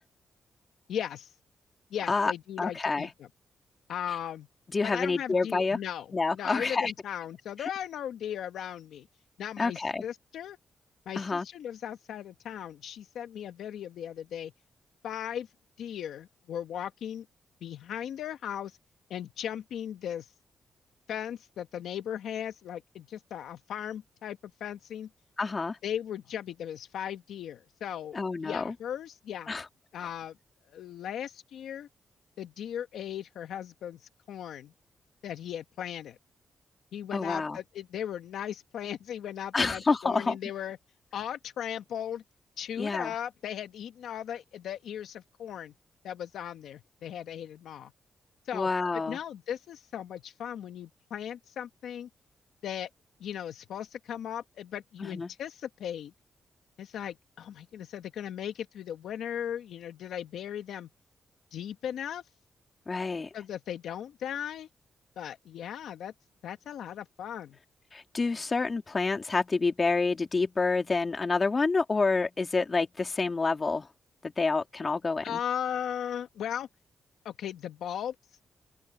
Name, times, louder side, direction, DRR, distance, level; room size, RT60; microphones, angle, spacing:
voice 1, 0.9-1.3 1.9-3.3 3.9-4.5 4.8-9.1 9.4-10.6 11.1-14.5 15.0-15.5 15.8-17.2 17.6-18.7 19.1-20.3 21.1-25.1 25.8-29.5 29.9-30.3 30.7-31.9 32.4-34.7 35.2-36.2 36.9-40.8 41.1-42.2 42.6-45.7 46.0-47.9 48.4-52.1 52.6-52.9 53.2-56.1 56.8-60.9 61.5-62.2 63.3-64.7 65.2-66.1 66.4-67.6 75.2-76.7 77.2-78.1, left 9 dB, 85° left, 1.2 m, -37 dB
voice 2, 2.6-3.1 4.7-5.8 6.1-6.9 9.6-10.0 11.1-11.5 25.4-25.8 28.1-28.7 29.5-29.6 37.1-37.6 39.5-40.4 42.8-43.1 48.5-49.2 55.0-55.3 62.9-63.3 67.9-73.9 74.2-75.4, left 4 dB, 40° left, 3.2 m, -28 dB
open air
cardioid pair, 65°, 0 cm